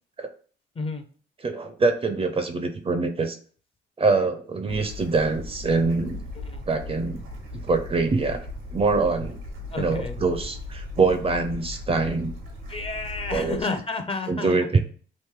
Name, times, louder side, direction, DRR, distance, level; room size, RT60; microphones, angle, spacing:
voice 1, 1.4-3.4 4.0-6.2 6.7-7.2 7.7-8.4 8.7-9.4 9.8-12.3 13.3-13.6 14.3-14.8, right 3 dB, 30° right, 7 dB, 0.5 m, -24 dB
Bird / Stream, 4.7-13.6, left 2 dB, 90° right, 1.1 m, -37 dB
voice 2, 6.3-6.7 9.7-10.2 12.7-14.5, left 3 dB, 30° left, 7 dB, 0.5 m, -31 dB
3.1 x 2.6 x 3.6 m, 0.43 s
cardioid pair, 90°, 20 cm